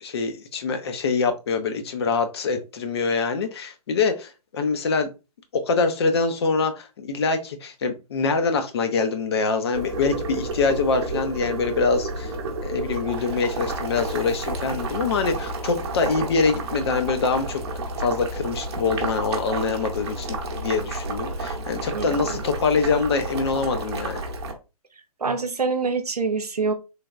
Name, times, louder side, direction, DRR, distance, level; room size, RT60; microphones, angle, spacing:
voice 1, 0.0-5.1 5.5-12.3 12.6-17.6 18.0-24.2, left 4 dB, 45° left, 0.5 m, -24 dB
Boiling, 9.7-24.5, right 2 dB, 45° right, 0.8 m, -31 dB
voice 2, 21.9-22.4 25.2-26.7, right 4 dB, 90° right, 0.6 m, -26 dB
3.3 x 2.2 x 2.4 m
figure-of-eight pair, 135°, 19 cm